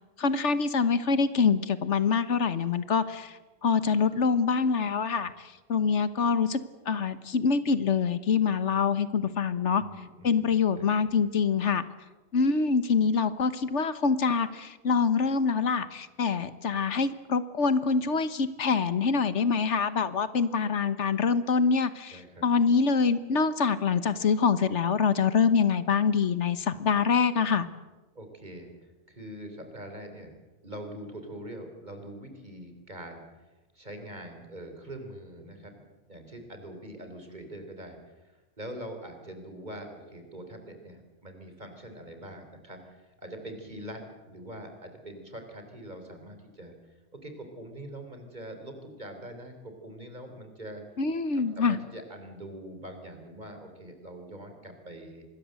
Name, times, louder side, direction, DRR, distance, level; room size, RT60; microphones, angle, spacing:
voice 1, 0.2-3.3 3.6-5.3 5.7-6.6 6.9-9.8 10.2-11.8 12.3-27.7 51.0-51.8, left 5 dB, 80° left, 13 dB, 1.6 m, -25 dB
voice 2, 9.8-11.1 22.1-22.5 28.1-30.4 30.6-33.5 33.7-46.7 47.1-50.8 51.3-55.2, right 1 dB, 40° right, 5 dB, 4.1 m, -43 dB
25.5 x 20.5 x 7.8 m, 1.2 s
omnidirectional pair, 1.2 m